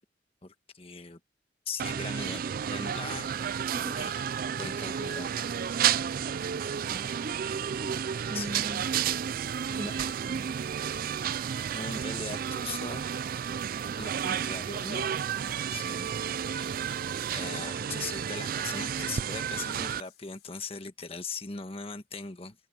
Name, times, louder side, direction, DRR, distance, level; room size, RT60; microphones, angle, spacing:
voice 1, 0.4-1.2 1.6-3.3 3.9-4.2 4.6-5.5 8.3-8.5 9.7-9.9 11.2-13.2 14.0-15.1 15.4-16.1 16.5-16.7 17.3-22.5, left 4 dB, 30° left, 1.4 m, -40 dB
sound 1, 1.8-20.0, right 8 dB, 50° right, 0.3 m, -32 dB
voice 2, 6.9-8.0 8.3-8.8 9.7-10.5, right 1 dB, 25° right, 1.8 m, -41 dB
sound 2, 8.7-17.5, right 14 dB, 80° right, 6.7 m, -56 dB
sound 3, 9.5-20.5, left 13 dB, 65° left, 7.9 m, -62 dB
open air
head